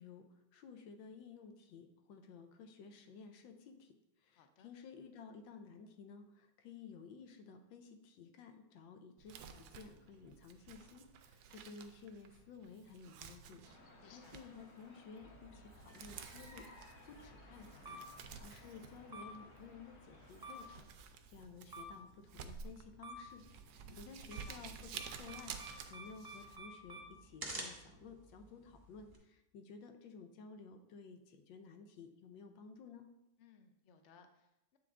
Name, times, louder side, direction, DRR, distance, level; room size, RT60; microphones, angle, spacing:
voice 1, 0.0-20.9 21.3-33.1, left 5 dB, 85° left, 6 dB, 1.4 m, -55 dB
voice 2, 4.3-4.7 14.0-14.5 23.8-24.8 33.4-34.8, left 6 dB, 65° left, 6 dB, 0.7 m, -64 dB
Crumpling crinkling, 9.2-26.6, right 7 dB, 70° right, 1.0 m, -53 dB
sound 1, 13.6-20.8, left 2 dB, 50° left, 1.8 m, -61 dB
sound 2, 15.2-29.2, right 1 dB, 20° right, 0.7 m, -53 dB
7.9 x 4.6 x 3.6 m, 0.87 s
omnidirectional pair, 2.0 m